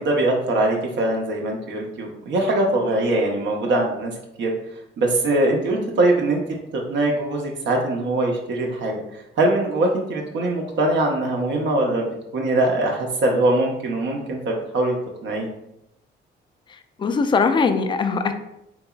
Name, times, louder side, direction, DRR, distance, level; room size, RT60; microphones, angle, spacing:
voice 1, 0.0-4.1 4.4-4.5 5.0-6.4 6.7-9.0 9.4-12.1 12.3-14.9 15.2-15.5, right 2 dB, 65° right, 0 dB, 0.7 m, -22 dB
voice 2, 16.7-18.3, left 4 dB, 25° left, 8 dB, 0.3 m, -21 dB
3.9 x 2.9 x 2.3 m, 0.82 s
cardioid pair, 90°, 20 cm